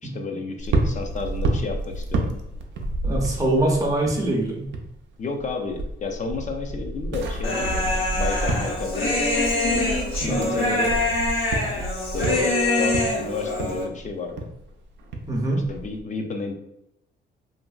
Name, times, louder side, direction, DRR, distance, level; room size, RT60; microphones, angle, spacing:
voice 1, 0.0-2.3 5.2-9.3 9.7-9.9 10.2-11.0 12.1-14.5 15.7-16.5, left 3 dB, 40° left, 3 dB, 0.5 m, -31 dB
sound 1, 0.6-5.0 5.2-16.0, right 2 dB, 65° right, 0.5 m, -30 dB
voice 2, 3.0-4.7 10.2-10.4 15.3-15.6, right 1 dB, 15° right, -2 dB, 0.7 m, -23 dB
Human voice, 7.4-13.8, left 2 dB, 85° left, 0.9 m, -24 dB
2.8 x 2.6 x 2.3 m, 0.84 s
cardioid pair, 90°, 20 cm